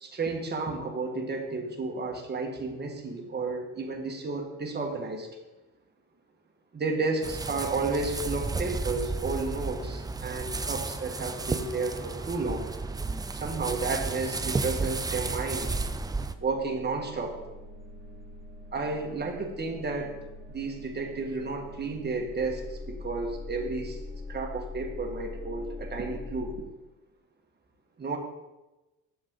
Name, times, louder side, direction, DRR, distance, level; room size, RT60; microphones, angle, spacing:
voice 1, 0.0-5.3 6.7-12.7 13.3-15.7 16.4-17.4 18.7-20.2 20.5-24.0 24.3-26.7 28.0-28.2, right 3 dB, 35° right, 2 dB, 1.5 m, -32 dB
sound 1, 7.2-16.3, right 3 dB, 15° right, 0.4 m, -33 dB
sound 2, 9.8-13.6 16.1-26.6, left 2 dB, 30° left, 2.1 m, -44 dB
7.1 x 6.9 x 3.9 m, 1.1 s
cardioid pair, 90°, 30 cm